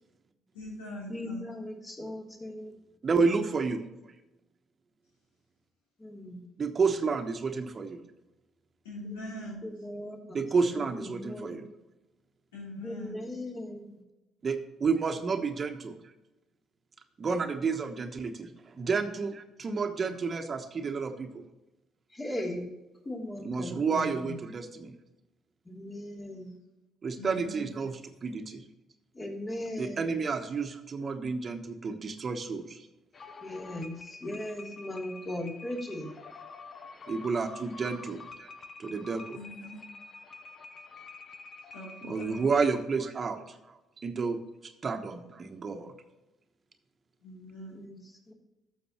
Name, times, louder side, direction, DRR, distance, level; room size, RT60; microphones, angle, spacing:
voice 1, 0.5-1.4 8.8-9.8 12.5-13.2 27.2-27.6 39.3-39.8 41.7-42.4 47.2-47.8, left 1 dB, 90° left, -4 dB, 3.3 m, -42 dB
voice 2, 1.1-2.7 6.0-6.4 9.0-9.2 9.6-10.4 10.7-11.6 12.8-14.0 22.1-22.7 23.0-24.4 25.6-26.5 29.1-30.2 33.4-36.1 47.7-48.3, left 1 dB, 30° left, -1 dB, 3.1 m, -38 dB
voice 3, 3.0-3.8 6.6-8.0 10.3-11.6 14.4-14.5 14.8-15.9 17.2-18.3 18.8-19.3 19.6-21.1 23.4-24.6 27.0-27.9 28.2-28.4 29.8-31.6 31.8-32.6 37.1-38.2 38.8-39.2 42.1-43.4 44.0-44.4 44.8-45.9, right 4 dB, 40° right, 6 dB, 1.1 m, -29 dB
sound 1, 33.1-42.6, left 3 dB, 45° left, 0.9 m, -47 dB
12.5 x 7.1 x 3.0 m, 1.0 s
hypercardioid pair, 50°, 0 cm